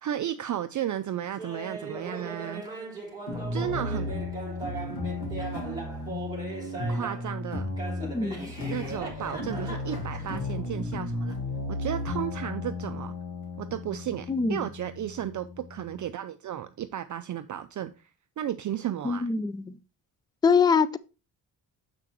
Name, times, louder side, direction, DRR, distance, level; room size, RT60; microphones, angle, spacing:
voice 1, 0.0-2.6 3.5-4.1 6.9-7.7 8.6-11.3 11.7-13.2 13.6-18.1 18.4-19.3, right 11 dB, 45° right, 0.5 m, -34 dB
Laughter, 1.4-7.3 7.8-10.4, right 3 dB, 10° right, 3.0 m, -39 dB
sound 1, 3.3-16.1, left 2 dB, 75° left, 1.9 m, -34 dB
voice 2, 8.0-8.5 14.3-14.7 19.0-19.8 20.4-21.0, left 5 dB, 10° left, 0.3 m, -24 dB
7.6 x 6.0 x 3.0 m
cardioid pair, 115°, 42 cm